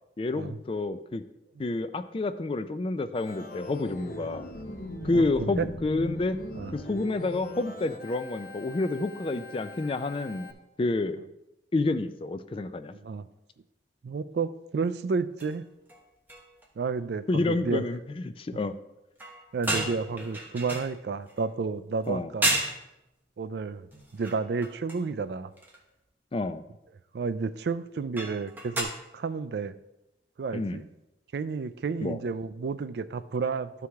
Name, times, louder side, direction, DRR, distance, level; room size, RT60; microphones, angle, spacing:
voice 1, 0.2-1.2 1.6-4.5 5.0-6.4 6.7-10.5 10.8-11.2 11.7-12.9 17.3-18.7 22.1-22.3 26.3-26.6 30.5-30.8 32.0-32.2, left 2 dB, 30° left, 11 dB, 0.4 m, -29 dB
Organ, 3.1-10.5, left 1 dB, 55° left, 0.8 m, -40 dB
voice 2, 5.0-5.7 6.5-6.8 12.9-13.3 14.0-15.6 16.8-17.8 19.5-22.6 23.4-23.9 24.1-25.5 27.1-29.7 30.4-30.8 31.3-33.9, right 4 dB, 65° right, 13 dB, 0.4 m, -31 dB
sound 1, 15.4-15.6 15.9-16.0 16.3-16.7 19.2-21.5 22.0-22.1 22.4-22.8 23.9-25.1 25.6-25.8 28.2-28.8, right 1 dB, 10° right, 1.1 m, -32 dB
12.5 x 4.8 x 3.5 m, 0.92 s
head